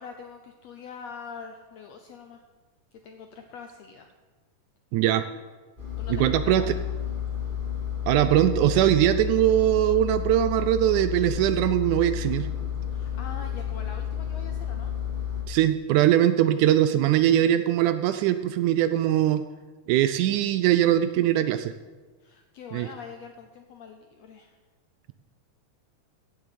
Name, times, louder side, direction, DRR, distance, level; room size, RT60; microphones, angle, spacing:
voice 1, 0.0-2.4 2.9-4.1 6.0-7.0 12.9-14.9 22.2-24.6, left 6 dB, 75° left, 5 dB, 1.6 m, -43 dB
voice 2, 4.9-5.3 6.1-6.8 8.1-12.5 15.5-19.4 19.9-21.7 22.7-22.9, right 12 dB, 80° right, 11 dB, 1.8 m, -21 dB
Engine, 5.8-15.4, left 9 dB, 15° right, 2.4 m, -31 dB
16.0 x 7.3 x 6.9 m, 1.3 s
omnidirectional pair, 3.8 m